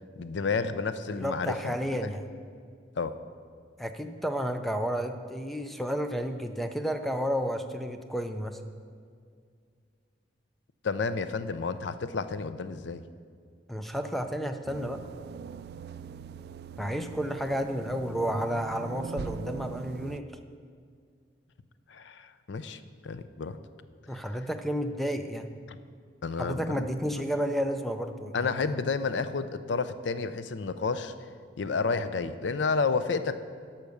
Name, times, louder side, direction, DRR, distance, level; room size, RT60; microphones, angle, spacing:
voice 1, 0.2-2.1 3.0-3.2 10.8-13.0 21.9-23.6 26.2-27.0 28.3-31.1 31.6-33.4, left 4 dB, 80° left, 12 dB, 0.5 m, -31 dB
voice 2, 1.1-2.2 3.8-8.6 13.7-15.0 16.8-20.2 24.1-25.5 26.4-28.5, equal, ahead, 7 dB, 0.5 m, -31 dB
sound 1, 14.7-20.2, right 5 dB, 60° right, 0.3 m, -41 dB
12.0 x 5.8 x 6.6 m, 2.1 s
head